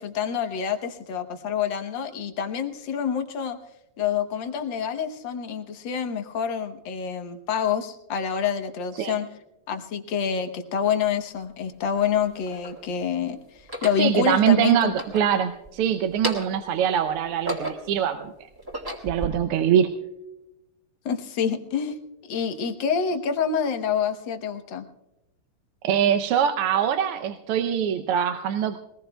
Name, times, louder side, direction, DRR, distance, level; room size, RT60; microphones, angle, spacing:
voice 1, 0.0-3.6 4.0-9.3 9.7-14.9 21.0-22.0 22.2-24.9, left 7 dB, 60° left, 6 dB, 1.6 m, -27 dB
sound 1, 11.1-11.2 12.0-12.8 13.6-14.1 14.8-15.7 16.1-16.7 17.2-18.0 18.5-19.3, right 1 dB, 10° right, 1.6 m, -33 dB
voice 2, 14.0-18.3 19.0-19.9 25.8-28.8, right 9 dB, 90° right, 7 dB, 1.7 m, -23 dB
22.0 x 19.0 x 2.2 m, 0.96 s
omnidirectional pair, 2.4 m